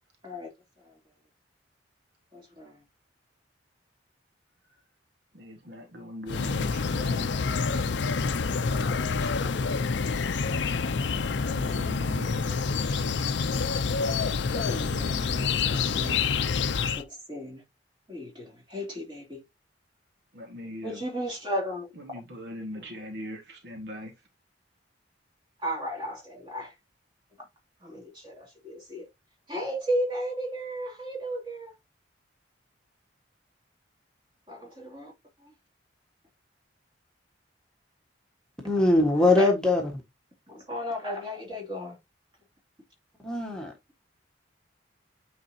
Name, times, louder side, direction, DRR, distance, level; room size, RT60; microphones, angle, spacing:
voice 1, 2.3-2.8 8.4-9.9 14.5-16.2 17.0-17.6 18.1-19.4 20.8-21.9 22.7-22.8 25.6-26.7 27.4-27.5 27.8-29.1 29.5-31.7 34.5-35.1 35.4-35.5 39.2-39.5 40.5-42.0, equal, 25° right, 2.9 m, -35 dB
voice 2, 5.3-7.6 11.4-13.5 20.3-21.0 22.0-24.1, left 1 dB, 60° right, 1.6 m, -41 dB
sound 1, 6.3-17.0, left 5 dB, 70° left, 0.5 m, -27 dB
voice 3, 38.6-40.0 43.2-43.7, left 2 dB, 5° left, 1.4 m, -22 dB
8.9 x 4.1 x 2.7 m
head